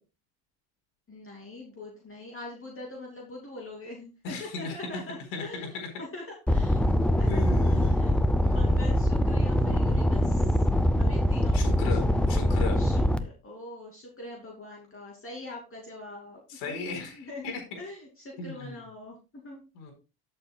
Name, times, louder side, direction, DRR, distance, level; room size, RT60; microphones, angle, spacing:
voice 1, 1.1-10.7 11.0-12.2 12.7-19.6, left 2 dB, 25° left, -2 dB, 2.7 m, -43 dB
voice 2, 4.2-4.8 5.3-5.4 7.3-8.0 11.5-12.0 12.3-12.8 16.5-17.6 18.4-18.7 19.8-19.9, left 4 dB, 85° left, 4 dB, 4.2 m, -35 dB
sound 1, 6.5-13.2, left 1 dB, ahead, 0.5 m, -23 dB
13.0 x 7.6 x 2.3 m, 0.30 s
cardioid pair, 115°, 48 cm